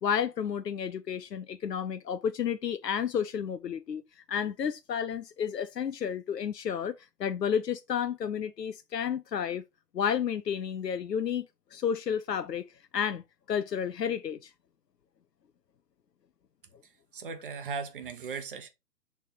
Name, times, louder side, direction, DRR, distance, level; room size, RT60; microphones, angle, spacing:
voice 1, 0.0-9.6 9.9-12.6 12.9-13.2 13.5-14.5, left 8 dB, 90° left, 0.7 m, -31 dB
voice 2, 16.8-18.7, right 5 dB, 35° right, 1.0 m, -38 dB
6.5 x 3.5 x 4.4 m
figure-of-eight pair, 145°, 47 cm